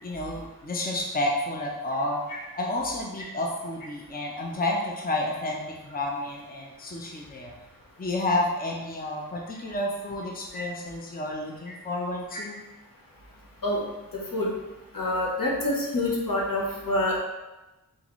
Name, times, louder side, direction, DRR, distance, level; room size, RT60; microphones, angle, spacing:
voice 1, 0.0-2.2 2.5-7.5 8.0-12.6, left 1 dB, 25° left, -2 dB, 0.6 m, -30 dB
voice 2, 14.9-17.2, left 1 dB, 65° left, -3 dB, 1.2 m, -26 dB
3.9 x 3.8 x 3.1 m, 1.1 s
wide cardioid pair, 65°, 36 cm